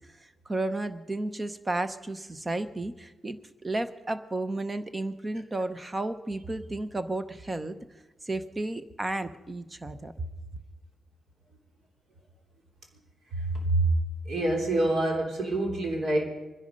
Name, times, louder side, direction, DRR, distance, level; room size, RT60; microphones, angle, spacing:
voice 1, 0.1-7.7 8.2-10.3, right 2 dB, 15° right, 11 dB, 0.8 m, -33 dB
voice 2, 13.3-13.9 14.2-16.2, right 2 dB, 50° right, 1 dB, 3.4 m, -26 dB
24.0 x 10.5 x 5.3 m, 1.1 s
wide cardioid pair, 160°, 0 cm